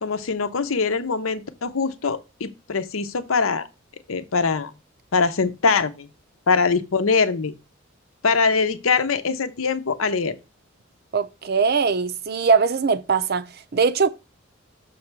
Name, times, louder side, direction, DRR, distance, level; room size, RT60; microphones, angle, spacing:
voice 1, 0.0-3.7 4.1-4.7 5.1-6.1 6.5-7.5 8.2-10.4, left 4 dB, 85° left, 0.7 m, -22 dB
voice 2, 11.1-14.1, right 5 dB, 50° right, 0.6 m, -21 dB
6.4 x 3.3 x 6.0 m
head